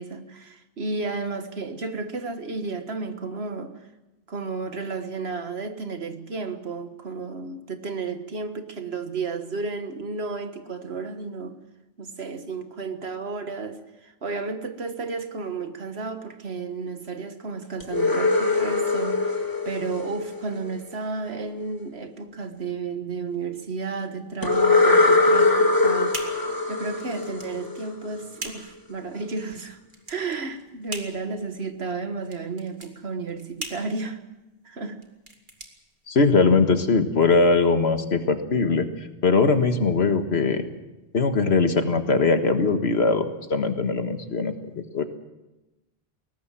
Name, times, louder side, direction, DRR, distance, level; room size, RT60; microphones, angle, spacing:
voice 1, 0.0-3.7 4.3-11.6 12.0-26.2 26.7-29.8 30.1-34.2 34.7-35.0, right 4 dB, 75° right, 8 dB, 1.8 m, -32 dB
sound 1, 17.8-20.8 24.4-28.1, left 3 dB, 20° left, 2.0 m, -22 dB
sound 2, 25.3-36.6, right 2 dB, 50° right, 2.5 m, -41 dB
voice 2, 36.1-38.9 39.2-40.6 41.1-44.5 44.9-45.0, left 4 dB, 75° left, 8 dB, 1.8 m, -21 dB
21.5 x 18.0 x 7.5 m, 1.0 s
omnidirectional pair, 1.1 m